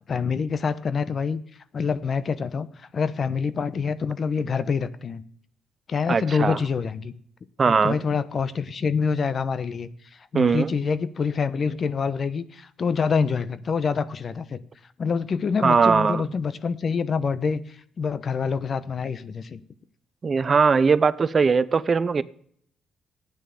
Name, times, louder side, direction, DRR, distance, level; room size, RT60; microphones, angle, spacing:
voice 1, 0.1-1.4 1.7-5.2 5.9-7.1 7.6-14.6 15.0-19.6, left 5 dB, 45° left, 0.9 m, -26 dB
voice 2, 6.1-6.6 7.6-8.0 10.3-10.7 15.6-16.2 20.2-22.2, right 5 dB, 40° right, 0.6 m, -20 dB
12.5 x 9.3 x 7.0 m
cardioid pair, 90°, 0 cm